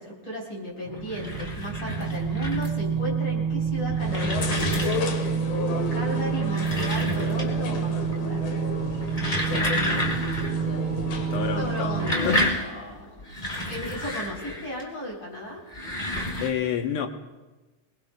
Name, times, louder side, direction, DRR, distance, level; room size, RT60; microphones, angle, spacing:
voice 1, 0.0-4.8 5.9-8.5 11.6-13.3 13.6-15.6, equal, 45° left, -3 dB, 4.8 m, -35 dB
sound 1, 0.8-12.2, right 7 dB, 75° right, 1.0 m, -28 dB
sound 2, 0.9-2.9 3.6-5.3 6.3-7.7 8.0-8.5 8.9-10.6 10.9-11.0 11.7-14.8 15.6-16.5, left 1 dB, 20° left, 1.4 m, -30 dB
sound 3, 4.0-12.4, left 4 dB, 80° left, 2.6 m, -33 dB
voice 2, 9.5-10.1 11.3-11.9 12.2-12.6 16.4-17.1, left 8 dB, 65° left, 6 dB, 1.5 m, -29 dB
27.0 x 20.5 x 2.2 m, 1.2 s
omnidirectional pair, 3.3 m